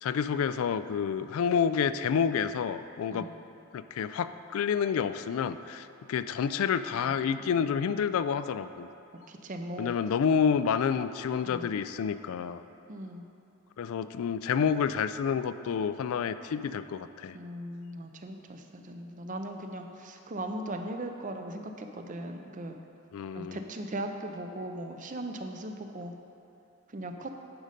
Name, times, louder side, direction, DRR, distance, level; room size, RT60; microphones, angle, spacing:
voice 1, 0.0-3.3 3.7-8.9 9.8-12.6 13.8-17.3 23.1-23.6, left 7 dB, 70° left, 13 dB, 0.3 m, -29 dB
voice 2, 7.0-7.5 9.3-9.9 11.5-11.7 12.9-13.2 17.3-22.8 23.3-26.1 26.9-27.3, right 1 dB, 35° right, 5 dB, 0.5 m, -39 dB
10.5 x 5.2 x 5.1 m, 2.7 s
head